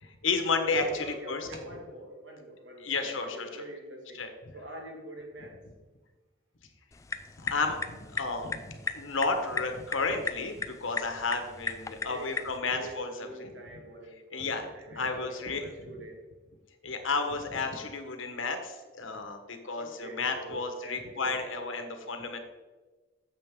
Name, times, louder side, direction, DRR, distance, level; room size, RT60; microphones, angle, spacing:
voice 1, 0.0-1.5 2.8-3.6 4.1-4.3 7.4-7.8 8.1-13.5 14.3-14.7 14.9-15.7 16.8-22.4, left 4 dB, 80° left, 5 dB, 1.3 m, -32 dB
voice 2, 0.8-4.2 4.5-5.6 11.9-16.2 19.7-21.4, right 1 dB, 65° right, 2 dB, 1.8 m, -44 dB
sound 1, 6.9-12.6, left 3 dB, 15° left, 0.3 m, -37 dB
9.1 x 7.4 x 3.8 m, 1.3 s
head